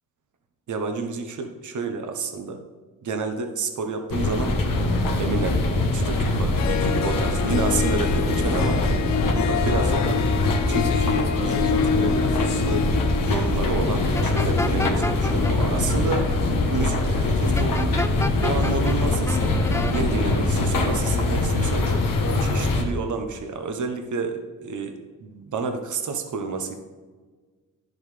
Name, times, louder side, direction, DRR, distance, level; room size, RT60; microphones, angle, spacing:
voice 1, 0.7-2.6 3.0-4.6 5.2-5.6 5.9-8.8 9.4-10.2 10.7-12.9 13.2-26.7, right 4 dB, 60° right, 5 dB, 1.2 m, -30 dB
sound 1, 4.1-22.8, left 2 dB, 75° left, 1.4 m, -23 dB
Harp, 6.3-6.4 6.6-16.1, left 7 dB, 55° left, 0.6 m, -29 dB
sound 2, 14.1-15.5 17.6-19.0 19.3-20.0, left 2 dB, 10° left, 0.4 m, -30 dB
10.5 x 7.8 x 3.4 m, 1.4 s
cardioid pair, 60°, 34 cm